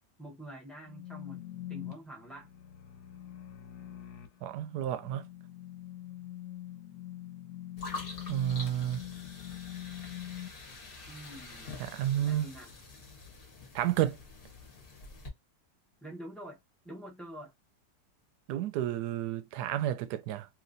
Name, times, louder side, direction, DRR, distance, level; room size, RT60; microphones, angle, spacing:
voice 1, 0.2-2.5 11.1-11.7 12.2-12.7 16.0-16.6 16.8-17.5, right 1 dB, ahead, 0.6 m, -46 dB
sound 1, 0.8-10.5, left 13 dB, 70° left, 1.3 m, -44 dB
voice 2, 4.4-5.2 8.3-9.0 11.8-12.5 13.7-14.2 18.5-20.5, right 12 dB, 75° right, 1.0 m, -31 dB
sound 2, 7.8-15.3, left 3 dB, 35° left, 1.0 m, -46 dB
3.0 x 3.0 x 2.6 m
omnidirectional pair, 2.0 m